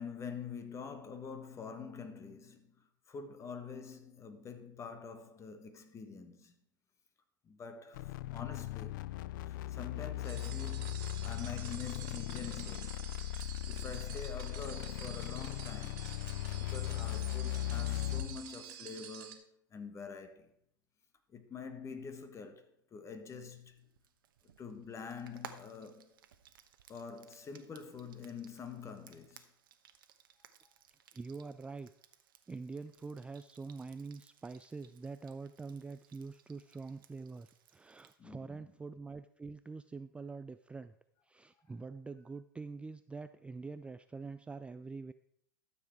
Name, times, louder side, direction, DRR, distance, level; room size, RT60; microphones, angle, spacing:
voice 1, 0.0-6.5 7.4-9.1 9.4-13.0 13.7-16.1 16.5-20.5 21.3-23.9 24.6-26.2 26.9-29.5 38.2-38.6, left 5 dB, 25° left, 1.4 m, -46 dB
sound 1, 7.9-18.4, left 14 dB, 65° left, 0.4 m, -38 dB
sound 2, 10.2-19.3, right 10 dB, 60° right, 1.8 m, -49 dB
Frying (food), 23.3-38.2, right 9 dB, 75° right, 1.0 m, -59 dB
voice 2, 31.1-31.9 32.5-40.9 41.2-45.1, right 4 dB, 10° right, 0.3 m, -45 dB
13.0 x 7.2 x 4.6 m
hypercardioid pair, 100°, 11 cm